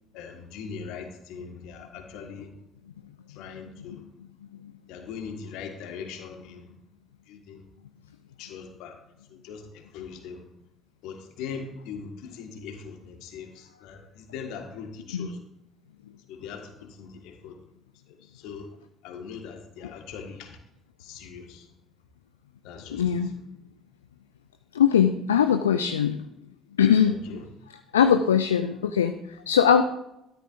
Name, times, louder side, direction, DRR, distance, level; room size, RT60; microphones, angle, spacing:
voice 1, 0.1-2.5 3.3-4.0 4.9-6.7 7.3-7.6 8.4-8.9 9.3-10.4 11.0-15.4 16.3-17.6 18.3-18.7 19.0-20.6 21.0-21.7 22.6-23.0 27.3-27.4, left 6 dB, 65° left, 4 dB, 1.6 m, -40 dB
voice 2, 22.9-23.3 24.7-26.2 26.8-27.2 27.7-29.8, left 8 dB, 80° left, 8 dB, 0.4 m, -21 dB
13.5 x 12.0 x 2.6 m, 0.84 s
figure-of-eight pair, 50°, 0 cm